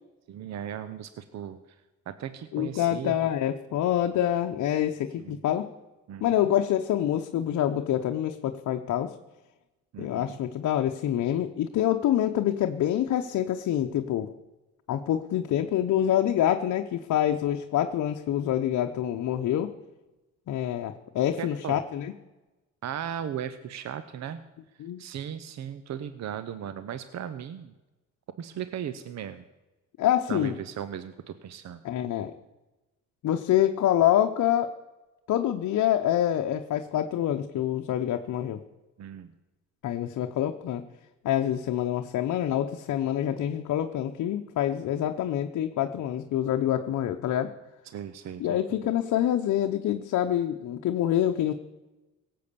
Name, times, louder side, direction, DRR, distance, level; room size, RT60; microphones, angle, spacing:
voice 1, 0.3-1.6 2.1-3.2 5.2-5.4 6.1-6.2 9.9-10.4 21.4-21.8 22.8-24.4 25.0-27.7 28.4-29.4 30.3-31.8 39.0-39.3 47.9-48.8, right 9 dB, 65° right, 12 dB, 0.8 m, -37 dB
voice 2, 2.5-5.7 6.2-9.1 10.0-14.3 14.9-19.7 20.5-22.1 24.8-25.0 30.0-30.6 31.8-32.3 33.2-34.7 35.3-38.6 39.8-40.9 41.2-47.5 48.4-51.5, left 11 dB, 70° left, 5 dB, 0.8 m, -26 dB
17.0 x 7.7 x 6.9 m, 1.1 s
cardioid pair, 90°, 30 cm